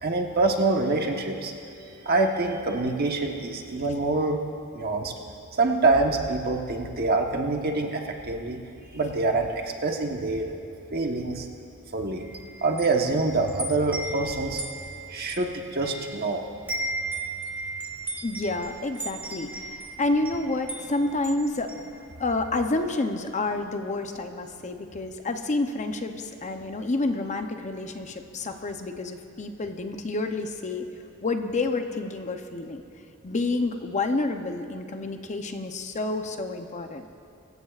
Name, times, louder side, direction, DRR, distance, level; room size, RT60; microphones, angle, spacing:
voice 1, 0.0-1.5 1.8-4.4 4.7-5.1 5.5-8.6 8.9-10.5 10.9-11.5 11.9-12.3 12.6-14.6 15.1-16.4, right 3 dB, 45° right, 2 dB, 1.2 m, -25 dB
Wind chime, 12.2-16.3 16.5-22.5, right 2 dB, 10° right, 1.6 m, -36 dB
voice 2, 18.2-21.7 22.2-30.9 31.2-32.8 33.2-37.1, left 2 dB, 35° left, 6 dB, 0.7 m, -29 dB
24.5 x 15.0 x 2.5 m, 2.6 s
head